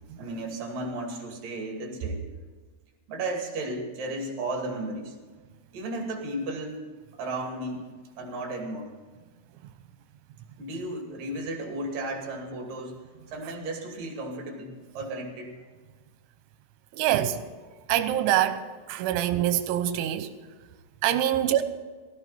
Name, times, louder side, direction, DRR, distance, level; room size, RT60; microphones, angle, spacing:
voice 1, 0.2-2.3 3.1-5.2 5.7-6.8 7.2-7.9 8.2-8.9 10.6-15.5 21.4-21.5, right 2 dB, 50° right, 3.9 m, -34 dB
voice 2, 16.9-17.4 17.9-18.6 18.9-20.3 21.0-21.6, right 12 dB, 85° right, 3.3 m, -24 dB
18.0 x 15.5 x 4.3 m
omnidirectional pair, 5.5 m